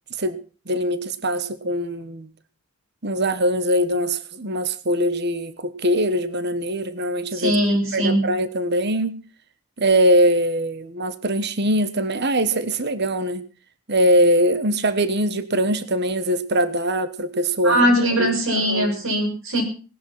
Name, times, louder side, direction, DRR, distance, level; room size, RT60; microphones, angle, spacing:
voice 1, 0.7-2.3 3.0-7.6 7.9-9.2 9.8-13.4 13.9-17.9 18.2-18.9, equal, 50° right, 1.3 m, -22 dB
voice 2, 7.3-8.3 17.6-19.6, equal, 70° right, 6.3 m, -20 dB
19.0 x 11.0 x 5.8 m
head